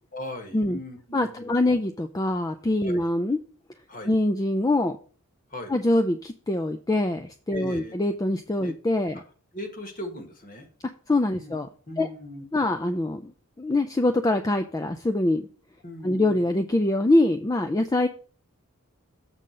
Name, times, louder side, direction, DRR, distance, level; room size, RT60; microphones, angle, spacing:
voice 1, 0.1-1.5 2.8-3.1 3.9-4.1 5.5-5.7 7.5-7.9 8.6-8.7 9.1-9.2 9.5-10.7 11.4-11.5 11.9-12.4 15.8-16.5, left 1 dB, 40° left, 4 dB, 1.6 m, -38 dB
voice 2, 1.1-3.4 4.1-5.0 5.7-9.2 11.1-11.7 12.0-12.1 12.5-13.3 13.6-15.4 16.0-18.1, left 1 dB, 15° left, 7 dB, 0.3 m, -24 dB
7.5 x 3.8 x 6.5 m, 0.42 s
head